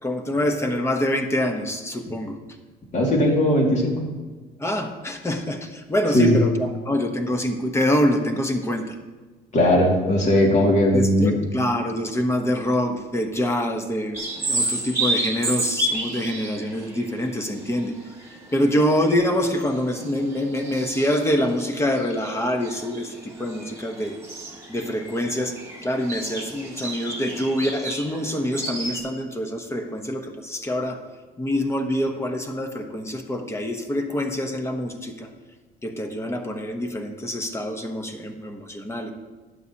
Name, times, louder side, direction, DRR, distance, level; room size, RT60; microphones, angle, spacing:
voice 1, 0.0-2.4 4.6-9.0 10.9-14.2 14.5-18.1 18.5-24.2 24.7-31.0 31.4-35.3 35.8-39.1, left 1 dB, 15° left, 5 dB, 1.1 m, -25 dB
voice 2, 2.9-4.0 6.1-6.3 9.5-11.3, left 1 dB, 45° left, -1 dB, 2.4 m, -18 dB
sound 1, 14.1-29.0, right 2 dB, 15° right, 1.9 m, -32 dB
12.0 x 8.5 x 2.9 m, 1.3 s
cardioid pair, 110°, 17 cm